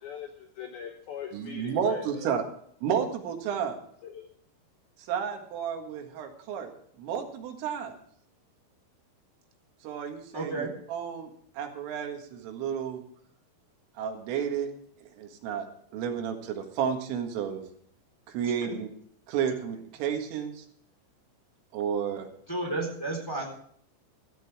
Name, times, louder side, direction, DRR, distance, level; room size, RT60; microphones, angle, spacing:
voice 1, 0.0-2.3 4.0-4.3, left 7 dB, 75° left, 4 dB, 2.3 m, -40 dB
voice 2, 1.3-2.4 2.8-3.8 5.1-6.7 7.0-8.0 9.8-11.3 11.6-13.0 14.0-14.7 15.2-15.7 15.9-17.6 18.3-18.9 19.3-20.6 21.7-22.3, right 8 dB, 80° right, 4 dB, 4.4 m, -31 dB
voice 3, 10.3-10.7 18.4-18.7 22.5-23.5, right 2 dB, 5° left, 0 dB, 3.1 m, -32 dB
16.0 x 13.5 x 3.6 m, 0.64 s
omnidirectional pair, 5.8 m